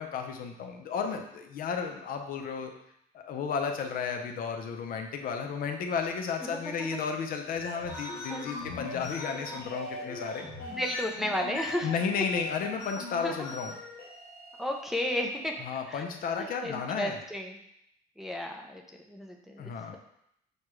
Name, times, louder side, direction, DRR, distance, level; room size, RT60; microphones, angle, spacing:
voice 1, 0.0-2.7 3.1-10.5 11.8-13.7 15.6-17.2 19.6-20.0, left 6 dB, 60° left, 4 dB, 0.6 m, -33 dB
voice 2, 6.5-6.9 8.3-8.4 10.6-11.9 13.2-13.3 14.6-15.6 15.9-16.0 16.4-17.6 18.2-18.8 19.1-20.0, left 1 dB, ahead, 2 dB, 0.5 m, -33 dB
sound 1, 7.5-15.7, left 2 dB, 80° left, 1.2 m, -40 dB
6.4 x 2.3 x 3.1 m, 0.75 s
cardioid pair, 110°, 17 cm